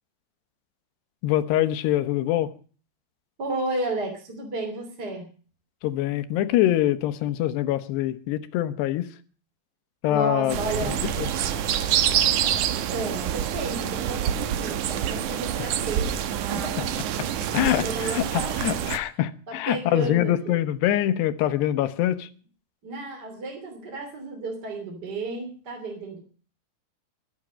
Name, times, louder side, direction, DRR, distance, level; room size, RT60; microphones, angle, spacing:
voice 1, 1.2-2.5 5.8-9.1 10.0-10.6 11.2-11.3 15.6-15.7 17.5-22.3, left 13 dB, 80° left, 12 dB, 3.2 m, -24 dB
voice 2, 3.4-5.3 10.1-11.0 12.9-16.2 16.5-16.9 17.2-18.7 19.5-20.6 22.8-26.2, right 2 dB, 25° right, 3 dB, 3.0 m, -33 dB
sound 1, 10.5-19.0, right 10 dB, 70° right, 2.0 m, -26 dB
23.0 x 9.0 x 6.3 m, 0.41 s
omnidirectional pair, 4.8 m